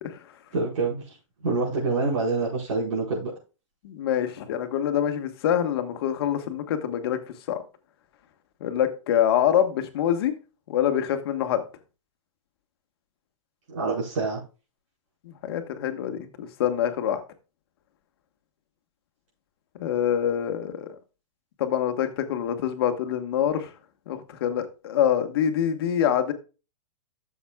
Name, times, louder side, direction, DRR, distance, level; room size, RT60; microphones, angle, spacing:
voice 1, 0.5-1.2 1.4-3.3 13.7-14.4, right 3 dB, 75° right, -5 dB, 4.9 m, -26 dB
voice 2, 3.8-7.2 7.5-7.6 8.6-10.3 10.7-11.6 15.2-17.2 19.8-20.9 21.6-23.7 24.1-26.3, left 9 dB, 50° left, 8 dB, 1.4 m, -25 dB
13.0 x 7.1 x 2.3 m, 0.31 s
hypercardioid pair, 160°, 17 cm